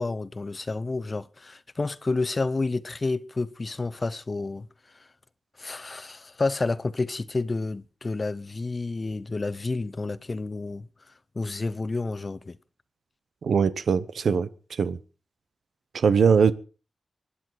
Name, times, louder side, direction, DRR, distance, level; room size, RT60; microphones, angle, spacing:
voice 1, 0.0-4.7 5.6-10.9 11.3-12.6, left 3 dB, 40° left, 0.8 m, -30 dB
voice 2, 13.4-14.5 14.8-15.0 15.9-16.5, right 6 dB, 80° right, 0.9 m, -21 dB
25.0 x 10.0 x 4.7 m
cardioid pair, 70°, 0 cm